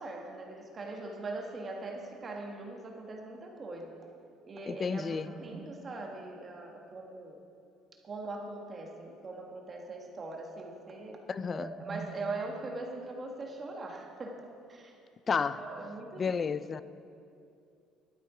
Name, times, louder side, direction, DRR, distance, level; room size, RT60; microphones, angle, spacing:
voice 1, 0.0-3.9 4.5-7.4 8.0-11.2 11.5-14.4 14.7-15.0 15.5-16.4 16.7-16.8, right 2 dB, 30° right, 1.4 m, -41 dB
voice 2, 4.7-5.3 11.3-11.7 15.3-15.6 16.2-16.8, left 5 dB, 30° left, 0.3 m, -31 dB
12.5 x 12.0 x 4.9 m
cardioid pair, 135°, 0 cm